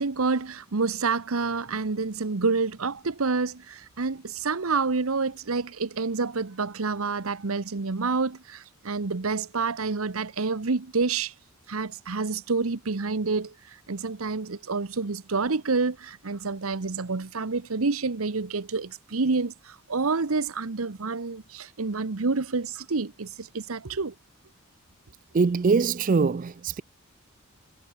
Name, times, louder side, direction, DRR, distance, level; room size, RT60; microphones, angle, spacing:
voice 1, 0.0-11.3 11.7-13.5 13.9-24.1, right 4 dB, 85° right, 1.0 m, -28 dB
voice 2, 25.3-26.8, right 4 dB, 40° right, 0.4 m, -23 dB
head